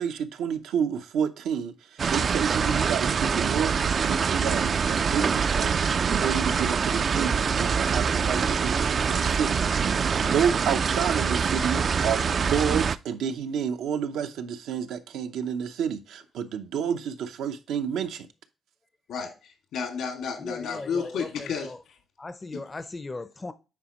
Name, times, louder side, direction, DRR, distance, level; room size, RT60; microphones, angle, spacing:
voice 1, 0.0-1.7 2.1-3.7 4.0-18.3, right 7 dB, 85° right, 0.7 m, -30 dB
sound 1, 2.0-13.0, right 6 dB, 45° right, 0.3 m, -25 dB
voice 2, 19.1-21.8 22.5-22.6, left 6 dB, 80° left, 2.2 m, -32 dB
voice 3, 20.4-21.8 22.2-23.5, left 3 dB, 25° left, 0.5 m, -38 dB
9.5 x 4.2 x 3.0 m
cardioid pair, 90°, 0 cm